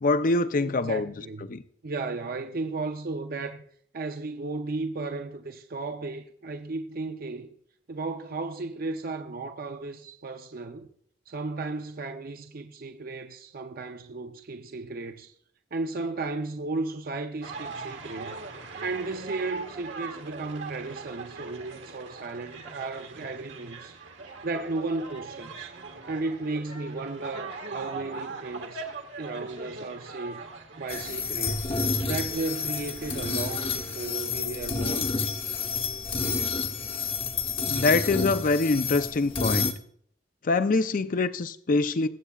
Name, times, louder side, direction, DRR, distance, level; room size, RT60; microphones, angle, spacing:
voice 1, 0.0-1.1 1.5-1.6 37.7-39.7 40.4-42.1, left 3 dB, 45° left, 0.5 m, -24 dB
voice 2, 0.8-1.5 1.8-3.6 3.9-7.5 7.9-10.9 11.3-15.3 15.7-18.4 18.8-24.0 24.4-25.8 26.1-28.8 29.2-30.5 30.8-31.8 32.1-35.1, right 3 dB, 50° right, 0.6 m, -34 dB
sound 1, 17.4-34.1, right 4 dB, 80° right, 1.7 m, -41 dB
sound 2, 30.9-39.7, left 4 dB, 30° left, 0.9 m, -29 dB
21.0 x 8.0 x 2.4 m
head